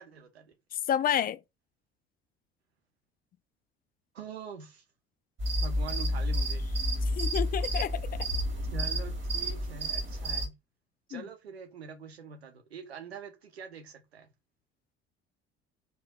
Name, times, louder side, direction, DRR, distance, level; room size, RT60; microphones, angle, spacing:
voice 1, 0.0-0.5 4.1-4.8 5.5-6.7 7.0-7.1 8.7-10.5 11.1-14.3, right 6 dB, 85° right, 0.9 m, -44 dB
voice 2, 0.7-1.4 7.2-8.3 11.1-11.2, left 10 dB, 30° left, 0.4 m, -30 dB
sound 1, 5.4-10.5, equal, 35° right, 1.9 m, -30 dB
4.4 x 3.3 x 2.3 m
figure-of-eight pair, 55°, 31 cm